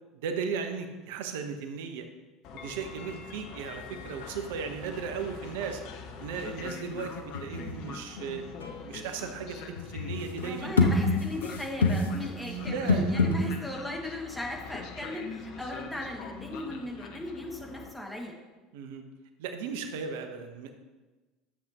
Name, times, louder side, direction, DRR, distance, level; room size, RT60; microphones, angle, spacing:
voice 1, 0.1-2.1 2.5-5.8 6.1-8.4 8.9-10.8 12.3-13.1 13.4-13.5 18.7-19.0 19.4-20.7, right 6 dB, 70° right, 6 dB, 0.9 m, -36 dB
Train, 2.4-17.9, left 5 dB, 55° left, 0.9 m, -44 dB
Stringed Instrument Foley, 3.8-3.9 4.0-4.5 6.4-13.7, left 3 dB, 85° left, 0.9 m, -29 dB
voice 2, 10.4-18.3, left 1 dB, 5° left, 0 dB, 2.0 m, -38 dB
11.5 x 7.5 x 3.0 m, 1.2 s
hypercardioid pair, 70°, 0 cm